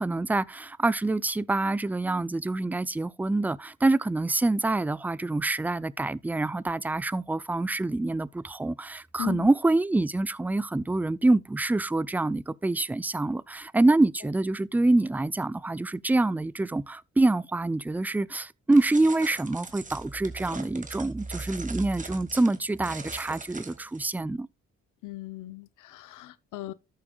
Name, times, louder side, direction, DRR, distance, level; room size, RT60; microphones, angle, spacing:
voice 1, 0.0-24.5, right 2 dB, 5° right, 0.4 m, -26 dB
voice 2, 9.2-9.5 25.0-26.7, left 18 dB, 85° left, 0.8 m, -38 dB
sound 1, 18.7-24.0, right 4 dB, 25° right, 1.7 m, -43 dB
13.5 x 7.1 x 2.3 m
cardioid pair, 90°, 30 cm